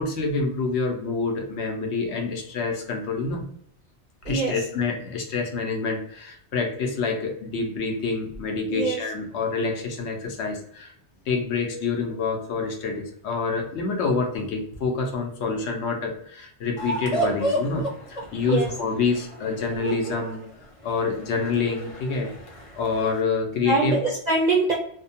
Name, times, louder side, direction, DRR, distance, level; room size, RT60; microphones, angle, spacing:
voice 1, 0.0-3.5 4.3-10.9 11.3-22.3 22.7-24.0, left 4 dB, 70° left, 3 dB, 0.9 m, -27 dB
sound 1, 16.8-23.2, right 1 dB, 40° left, 0.5 m, -32 dB
voice 2, 23.7-24.7, right 3 dB, 60° right, -3 dB, 0.4 m, -23 dB
2.7 x 2.2 x 2.7 m, 0.67 s
omnidirectional pair, 1.2 m